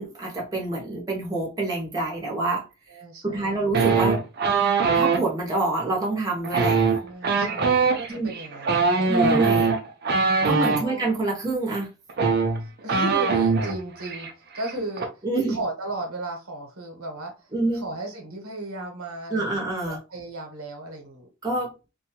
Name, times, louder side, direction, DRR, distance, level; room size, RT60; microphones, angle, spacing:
voice 1, 0.0-2.6 3.2-4.2 4.9-6.8 8.1-8.3 9.0-9.7 10.4-11.9 15.2-15.6 17.5-17.8 19.3-20.0 21.4-21.7, right 2 dB, 15° right, 0.7 m, -26 dB
voice 2, 2.9-3.6 7.0-9.4 10.5-11.2 12.8-14.3 14.5-15.1 15.5-19.6 19.9-21.3, right 2 dB, 90° right, 1.0 m, -36 dB
sound 1, 3.7-5.2 6.4-10.8 11.8-11.9 12.1-13.8 14.0-14.3 14.6-15.0, right 4 dB, 50° right, 0.5 m, -22 dB
2.6 x 2.3 x 2.8 m
head